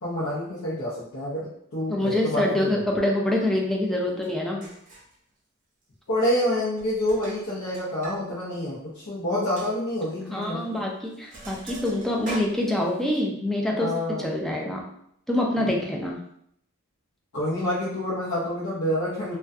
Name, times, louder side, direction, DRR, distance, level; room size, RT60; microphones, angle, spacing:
voice 1, 0.0-2.8 6.1-10.8 13.8-14.4 15.6-15.7 17.3-19.4, left 1 dB, 65° left, -9 dB, 0.7 m, -28 dB
voice 2, 1.9-4.7 10.3-13.9 14.2-14.8 15.3-16.2, left 1 dB, ahead, -1 dB, 0.3 m, -25 dB
Sink (filling or washing), 4.2-4.3 4.6-5.1 6.1-6.5 6.8-8.2 8.5-8.6 9.0-9.1 9.6-9.7 10.6-10.8 11.0-13.2, right 2 dB, 40° right, 0.7 m, -42 dB
2.6 x 2.2 x 2.3 m, 0.72 s
head